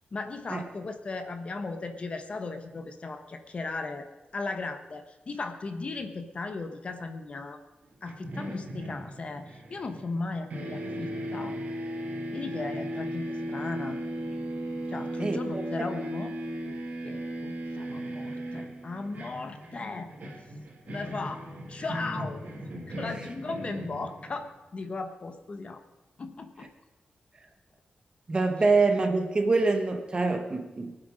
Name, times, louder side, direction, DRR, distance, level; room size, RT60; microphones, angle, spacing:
voice 1, 0.1-4.1 4.3-7.6 8.0-11.6 12.3-14.0 14.9-16.4 17.0-20.1 20.9-22.4 22.9-25.8 26.2-26.7, left 3 dB, 40° left, 7 dB, 1.0 m, -37 dB
sound 1, 8.1-10.2 10.5-24.5, equal, 60° right, 2.7 m, -37 dB
voice 2, 15.2-15.6 28.3-30.9, right 3 dB, 30° right, 5 dB, 1.3 m, -25 dB
22.5 x 8.0 x 5.1 m, 1.1 s
wide cardioid pair, 175°, 3 cm